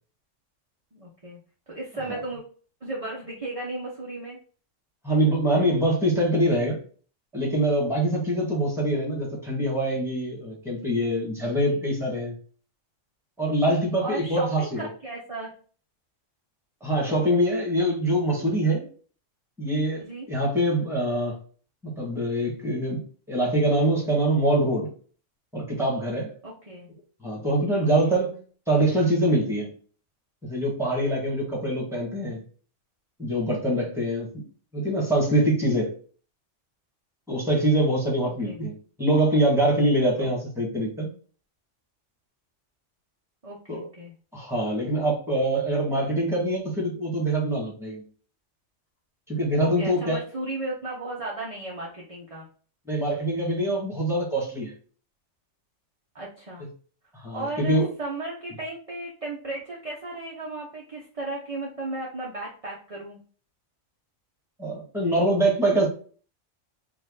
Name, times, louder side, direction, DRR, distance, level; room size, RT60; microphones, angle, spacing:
voice 1, 0.9-1.4 1.7-2.4 2.8-4.4 11.6-11.8 14.0-15.5 20.0-20.3 26.4-26.9 27.8-28.1 38.2-38.6 40.2-40.3 43.4-44.1 49.6-52.5 56.1-56.7 57.3-63.2, right 2 dB, 30° right, 1.0 m, -35 dB
voice 2, 5.0-6.8 7.3-12.4 13.4-14.9 16.8-18.9 19.6-21.4 21.8-23.0 23.3-24.9 25.5-26.3 27.2-28.4 28.7-29.7 30.4-32.4 33.2-34.4 34.7-36.0 37.3-38.7 39.0-41.1 43.7-43.9 44.3-48.0 49.3-50.2 52.9-54.7 57.2-57.9 64.6-65.9, right 1 dB, ahead, 1.8 m, -24 dB
4.7 x 2.6 x 3.8 m
omnidirectional pair, 1.3 m